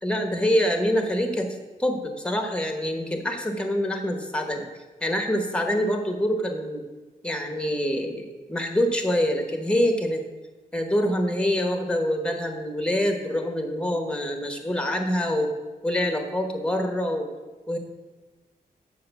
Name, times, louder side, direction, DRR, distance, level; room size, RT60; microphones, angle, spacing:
voice 1, 0.0-4.7 5.0-6.8 7.2-10.2 10.7-15.5 15.8-17.3 17.7-17.8, equal, 5° left, 5 dB, 1.0 m, -25 dB
7.7 x 4.9 x 6.9 m, 1.2 s
wide cardioid pair, 145°, 16 cm